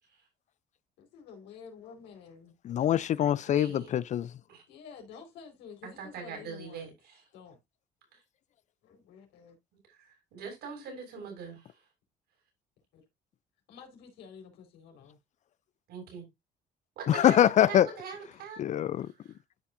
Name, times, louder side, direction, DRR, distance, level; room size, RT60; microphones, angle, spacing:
voice 1, 1.0-2.5 4.7-6.9 7.3-7.6 8.8-9.6 12.9-13.0 13.7-15.2, left 6 dB, 90° left, 4.1 m, -50 dB
voice 2, 2.6-4.3 17.1-17.9 18.6-19.1, left 11 dB, 45° left, 0.4 m, -24 dB
voice 3, 3.5-3.9 4.5-4.6 6.0-7.2 8.1-8.2 9.9-11.7 15.9-16.3 17.0-18.6 19.0-19.4, right 5 dB, 75° right, 6.6 m, -42 dB
13.0 x 5.6 x 2.5 m
cardioid pair, 110°, 17 cm